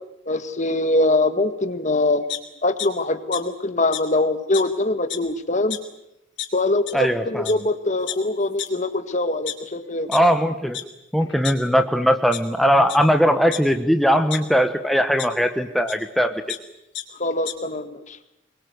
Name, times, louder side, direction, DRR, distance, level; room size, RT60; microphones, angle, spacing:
voice 1, 0.2-2.3 2.6-5.8 6.5-10.1 17.2-18.2, left 2 dB, 40° left, 11 dB, 1.8 m, -23 dB
sound 1, 2.3-2.9 3.3-3.4 3.9-4.0 4.5-4.6 5.0-5.3 5.7-5.8 6.4-6.5 6.9-7.0 7.5-7.6 8.1-8.2 8.6-8.7 9.3-10.2 10.7-10.8 11.2-11.9 12.3-12.4 12.9-13.0 13.5-14.4 15.2-15.3 15.9-16.0 16.3-16.6 16.9-17.0 17.3-17.5, left 12 dB, 65° left, 3.8 m, -31 dB
voice 2, 6.9-7.5 10.1-10.8 11.1-16.3, equal, ahead, 6 dB, 1.2 m, -19 dB
25.0 x 22.0 x 9.5 m, 0.83 s
head